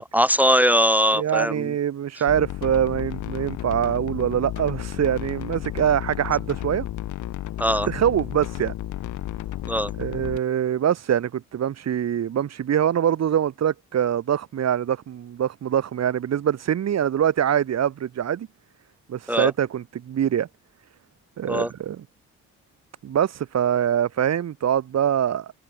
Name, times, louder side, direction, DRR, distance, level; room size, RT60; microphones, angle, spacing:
voice 1, 0.0-1.7 7.6-7.9 9.7-9.9 19.3-19.5 21.5-21.7, equal, 5° right, 0.7 m, -21 dB
voice 2, 1.1-6.9 7.9-8.7 10.0-18.5 19.1-20.5 21.4-22.0 23.0-25.5, right 9 dB, 60° right, 2.5 m, -24 dB
sound 1, 2.3-10.4, left 13 dB, 75° left, 1.8 m, -32 dB
open air
cardioid pair, 90°, 30 cm